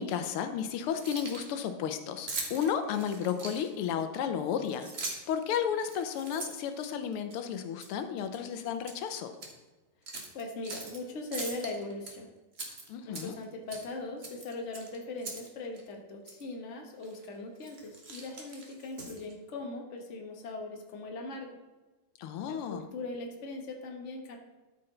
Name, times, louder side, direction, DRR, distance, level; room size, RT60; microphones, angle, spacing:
voice 1, 0.0-4.9 5.3-9.3 12.9-13.3 22.2-22.9, left 8 dB, 85° left, 8 dB, 1.6 m, -33 dB
Keys jangling, 0.9-1.6 2.3-3.9 4.6-5.4 5.8-7.4 7.8-8.0 8.3-9.0 9.3-9.5 10.1-11.0 11.3-12.1 12.5-13.4 13.7-13.9 14.2-15.5 15.8-15.9 16.3-16.4 17.0-17.2 17.6-19.3, right 3 dB, 35° right, 1.3 m, -41 dB
voice 2, 10.3-12.3 13.0-21.6 22.5-24.4, left 2 dB, 40° left, 2 dB, 1.3 m, -40 dB
12.5 x 5.7 x 3.8 m, 1.1 s
omnidirectional pair, 2.4 m